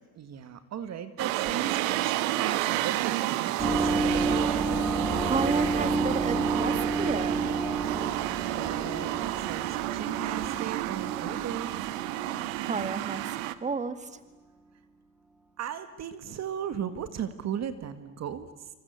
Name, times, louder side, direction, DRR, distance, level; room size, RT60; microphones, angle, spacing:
voice 1, 0.2-4.2 7.8-8.1 8.4-11.7 15.6-18.7, right 9 dB, 40° right, 11 dB, 1.8 m, -37 dB
sound 1, 1.2-13.6, right 15 dB, 85° right, 1.5 m, -30 dB
sound 2, 3.6-12.7, right 2 dB, 5° right, 2.7 m, -31 dB
voice 2, 5.2-7.5 12.6-14.2, right 4 dB, 20° right, 11 dB, 2.0 m, -32 dB
27.0 x 25.5 x 8.2 m, 1.2 s
supercardioid pair, 110°, 39 cm